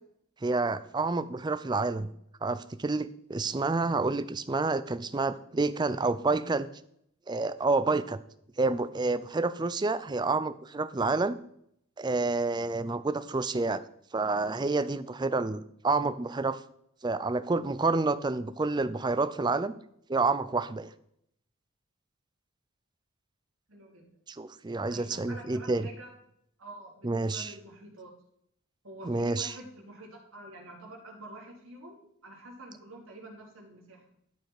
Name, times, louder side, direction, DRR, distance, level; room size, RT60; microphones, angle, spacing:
voice 1, 0.4-2.1 2.4-6.7 7.3-8.2 8.6-11.4 12.0-13.8 14.1-16.6 17.0-19.8 20.1-20.9 24.3-25.9 27.0-27.5 29.0-29.5, right 3 dB, 20° right, 14 dB, 0.4 m, -29 dB
voice 2, 23.7-24.0 24.9-26.1 26.6-28.1 28.8-34.0, right 1 dB, 85° right, -3 dB, 3.5 m, -47 dB
13.0 x 5.5 x 4.8 m, 0.70 s
head